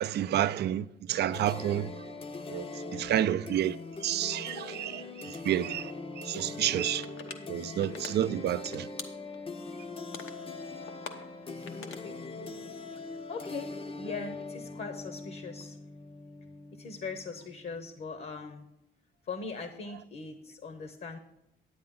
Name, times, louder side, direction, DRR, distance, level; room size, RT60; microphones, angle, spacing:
voice 1, 0.0-1.9 2.5-2.6 2.9-3.7 4.0-5.9 6.2-7.0 7.5-8.9, right 11 dB, 55° right, 0.4 m, -30 dB
sound 1, 1.3-17.9, left 3 dB, 30° left, 0.6 m, -42 dB
sound 2, 7.0-7.4 7.8-8.1 8.5-9.5 9.9-10.4 10.8-12.1, left 6 dB, 80° left, 0.9 m, -42 dB
voice 2, 11.8-12.2 12.9-13.0 13.3-15.8 16.8-18.7 19.2-21.2, left 4 dB, 50° left, 1.0 m, -40 dB
9.6 x 8.7 x 3.8 m
cardioid pair, 90°, 20 cm